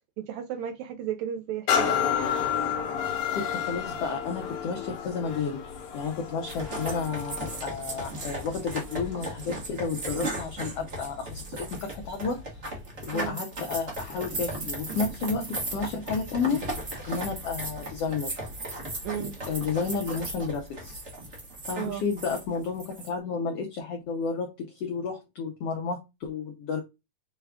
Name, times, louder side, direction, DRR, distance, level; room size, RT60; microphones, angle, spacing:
voice 1, 0.2-1.9 13.1-13.4 19.0-19.4 21.8-22.0, right 9 dB, 80° right, 1.7 m, -34 dB
sound 1, 1.7-9.3 9.8-10.0, left 7 dB, 65° left, 1.5 m, -31 dB
voice 2, 3.3-12.4 13.0-18.4 19.5-21.0 21.7-26.8, left 5 dB, 85° left, 1.3 m, -32 dB
sound 2, 6.5-23.1, right 1 dB, 65° right, 0.7 m, -36 dB
6.3 x 2.3 x 3.5 m
omnidirectional pair, 3.6 m